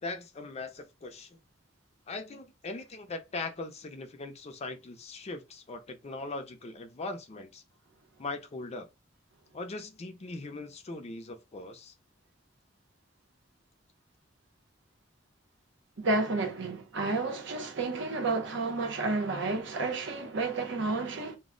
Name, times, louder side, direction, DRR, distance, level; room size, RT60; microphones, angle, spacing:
voice 1, 0.0-1.4 2.1-7.6 8.2-8.9 9.5-11.9, left 3 dB, 35° left, 0.4 m, -40 dB
voice 2, 16.0-21.4, right 3 dB, 65° right, 0.7 m, -31 dB
2.2 x 2.0 x 3.6 m
head